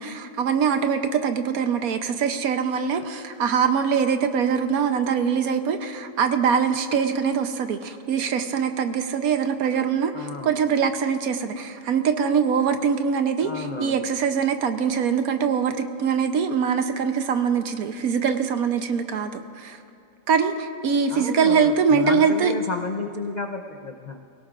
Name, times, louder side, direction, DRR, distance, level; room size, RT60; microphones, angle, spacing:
voice 1, 0.0-19.8 20.3-22.5, right 6 dB, 70° right, 8 dB, 1.2 m, -23 dB
voice 2, 10.1-10.7 13.4-14.1 21.1-24.3, left 3 dB, 65° left, 4 dB, 0.4 m, -32 dB
25.0 x 17.5 x 2.5 m, 2.6 s
omnidirectional pair, 1.7 m